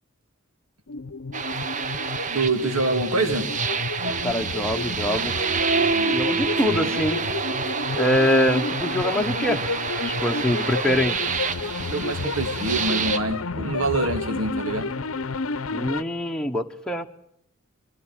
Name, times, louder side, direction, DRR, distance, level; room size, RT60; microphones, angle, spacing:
sound 1, 0.9-16.0, left 4 dB, 85° left, 0.8 m, -31 dB
sound 2, 1.3-13.2, right 5 dB, 35° right, 0.9 m, -27 dB
voice 1, 2.3-3.5 11.6-15.0, right 2 dB, 90° right, 2.9 m, -25 dB
voice 2, 4.2-5.3 6.1-7.2 8.0-9.6 10.0-11.2 15.7-17.1, left 1 dB, 5° left, 1.0 m, -24 dB
24.5 x 15.5 x 8.8 m
head